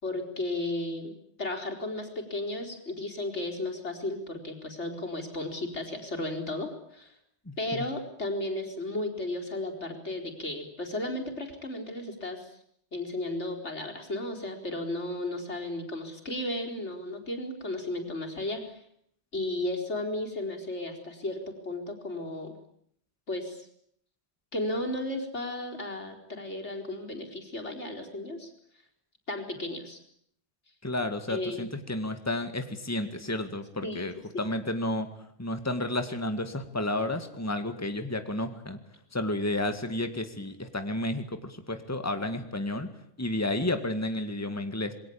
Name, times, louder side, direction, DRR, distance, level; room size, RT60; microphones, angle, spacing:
voice 1, 0.0-7.1 7.6-12.5 12.9-18.8 19.3-22.5 23.3-23.7 24.5-28.5 29.3-30.0 31.3-31.7 33.8-34.1 34.3-34.4, left 1 dB, 85° left, 3 dB, 4.7 m, -34 dB
voice 2, 7.5-7.8 30.8-35.1 35.4-38.8 39.1-44.9, left 1 dB, 15° left, 8 dB, 2.0 m, -31 dB
27.5 x 22.0 x 8.7 m, 0.69 s
omnidirectional pair, 1.1 m